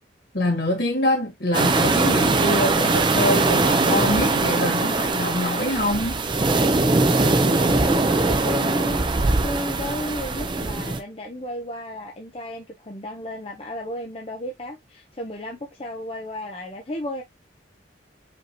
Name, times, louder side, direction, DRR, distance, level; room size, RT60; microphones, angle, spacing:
voice 1, 0.3-6.2, left 1 dB, 65° left, 2.2 m, -25 dB
sound 1, 1.5-11.0, right 3 dB, 25° right, 0.5 m, -21 dB
voice 2, 7.4-9.0 9.4-17.2, left 1 dB, 30° left, 0.6 m, -33 dB
5.1 x 2.8 x 2.9 m
head